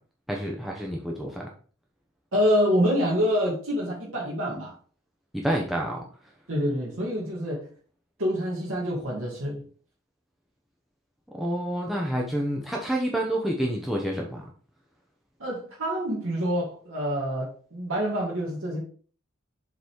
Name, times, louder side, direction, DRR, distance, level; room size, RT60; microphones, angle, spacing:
voice 1, 0.3-1.5 5.3-6.0 11.3-14.5, right 1 dB, ahead, 0.8 m, -28 dB
voice 2, 2.3-4.8 6.5-7.7 8.2-9.7 15.4-18.8, equal, 65° right, 2.2 m, -26 dB
7.0 x 4.0 x 4.6 m
head